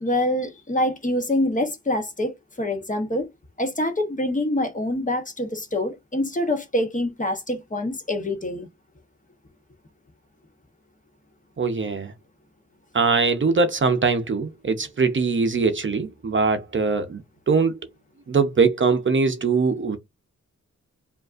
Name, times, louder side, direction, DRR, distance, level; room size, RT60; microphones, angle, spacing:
voice 1, 0.0-3.3 3.6-8.7, left 1 dB, 25° left, 0.9 m, -25 dB
voice 2, 11.6-12.1 12.9-17.2 17.5-17.8 18.3-20.0, right 4 dB, 40° right, 0.7 m, -21 dB
5.0 x 2.5 x 2.5 m
wide cardioid pair, 130°, 30 cm